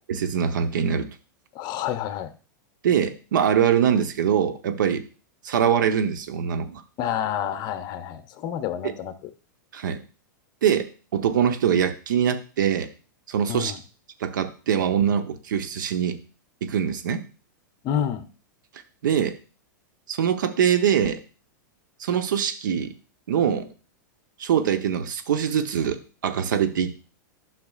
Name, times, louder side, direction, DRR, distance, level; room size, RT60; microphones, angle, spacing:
voice 1, 0.1-1.1 2.8-5.0 5.4-6.8 9.7-10.0 10.6-12.9 13.3-13.7 14.2-16.2 16.6-17.2 19.0-19.4 20.1-21.2 22.0-22.9 23.3-23.7 24.4-26.9, right 8 dB, 75° right, 8 dB, 0.9 m, -23 dB
voice 2, 1.5-2.3 7.0-9.1 13.5-13.8 17.8-18.2, left 9 dB, 40° left, 9 dB, 0.9 m, -28 dB
12.0 x 5.9 x 2.4 m, 0.36 s
hypercardioid pair, 110°, 10 cm